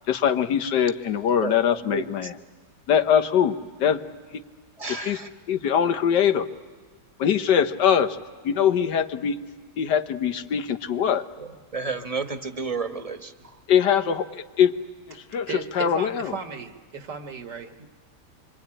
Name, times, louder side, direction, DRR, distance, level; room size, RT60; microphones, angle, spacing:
voice 1, 0.1-2.3 2.9-4.0 4.3-4.4 5.0-5.2 5.5-6.5 7.2-8.2 8.4-9.4 9.8-11.3 13.7-14.7 15.1-16.4, left 8 dB, 80° left, 9 dB, 1.7 m, -22 dB
voice 2, 1.4-2.3 4.8-5.3 11.4-13.6 17.8-17.9, right 4 dB, 25° right, 7 dB, 1.2 m, -32 dB
voice 3, 15.5-17.7, right 5 dB, 80° right, 5 dB, 2.2 m, -35 dB
26.5 x 24.5 x 8.9 m, 1.5 s
omnidirectional pair, 1.8 m